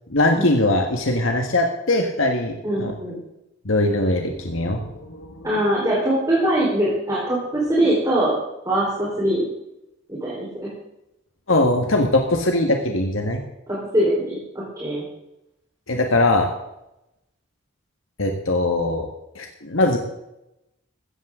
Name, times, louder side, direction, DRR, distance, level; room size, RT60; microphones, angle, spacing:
voice 1, 0.1-2.9 3.6-5.5 11.5-13.4 15.9-16.5 18.2-19.1 19.3-20.0, left 2 dB, 90° left, 3 dB, 1.7 m, -21 dB
voice 2, 2.6-3.2 5.4-8.3 8.6-9.5 10.1-10.7 13.9-15.0, right 1 dB, 20° right, -6 dB, 4.2 m, -22 dB
16.0 x 14.5 x 3.8 m, 0.88 s
head